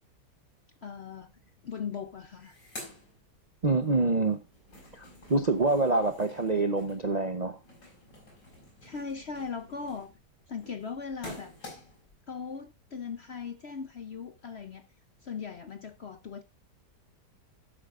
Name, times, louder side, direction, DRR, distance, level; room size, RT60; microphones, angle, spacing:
voice 1, 0.8-1.3 1.6-2.6 8.8-10.1 10.5-11.5 12.3-14.9 15.2-16.4, left 6 dB, 55° left, 0.8 m, -39 dB
sound 1, 1.8-1.9 2.1-3.9 4.2-12.1, left 1 dB, 85° left, 5.6 m, -49 dB
voice 2, 3.6-4.4 4.9-7.6, right 3 dB, 40° right, 0.6 m, -26 dB
12.0 x 8.8 x 2.5 m
omnidirectional pair, 1.8 m